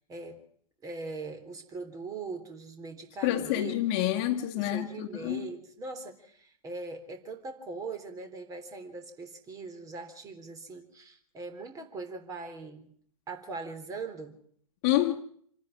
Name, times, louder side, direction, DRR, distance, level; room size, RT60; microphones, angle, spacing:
voice 1, 0.8-3.7 4.5-12.9 13.3-14.3, right 3 dB, 20° right, 3.5 m, -41 dB
voice 2, 3.2-5.5 14.8-15.1, left 14 dB, 35° left, 2.0 m, -28 dB
27.5 x 10.5 x 9.7 m
figure-of-eight pair, 110°, 19 cm